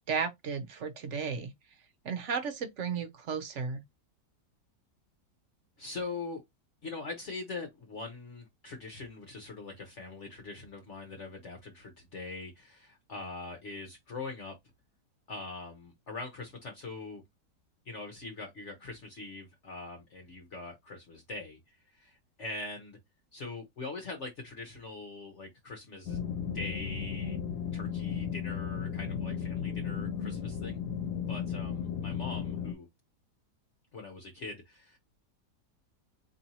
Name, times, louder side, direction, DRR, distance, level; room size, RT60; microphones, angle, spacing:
voice 1, 0.1-1.5 2.0-3.8, right 6 dB, 55° right, 0.9 m, -34 dB
voice 2, 5.8-6.4 6.8-14.5 15.3-17.2 17.8-23.0 23.3-26.3 26.5-27.4 27.7-30.8 31.3-32.9 33.9-35.0, left 3 dB, 50° left, 1.1 m, -42 dB
sound 1, 26.1-32.7, left 7 dB, 75° left, 1.2 m, -35 dB
4.3 x 3.0 x 2.8 m
omnidirectional pair, 1.9 m